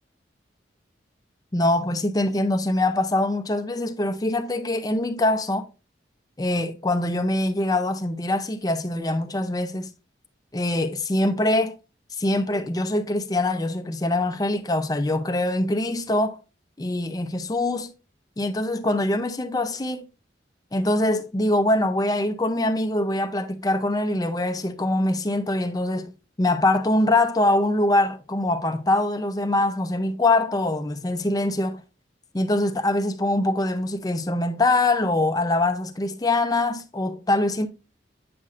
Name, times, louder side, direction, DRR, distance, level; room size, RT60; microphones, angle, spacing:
voice 1, 1.5-5.7 6.4-9.9 10.5-11.7 12.2-16.4 16.8-17.9 18.4-20.1 20.7-26.1 26.4-31.8 32.3-37.7, left 2 dB, 20° left, 0.6 m, -23 dB
8.5 x 5.7 x 2.5 m
head